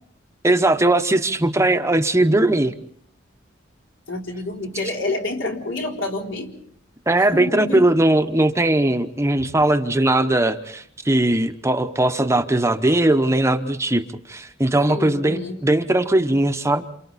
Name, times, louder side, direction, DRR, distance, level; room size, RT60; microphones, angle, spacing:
voice 1, 0.4-2.7 7.1-16.8, right 1 dB, 15° right, 7 dB, 0.9 m, -19 dB
voice 2, 4.1-6.5 7.3-7.9 14.9-15.6, left 2 dB, 80° left, 0 dB, 4.1 m, -28 dB
28.5 x 28.0 x 4.1 m, 0.65 s
head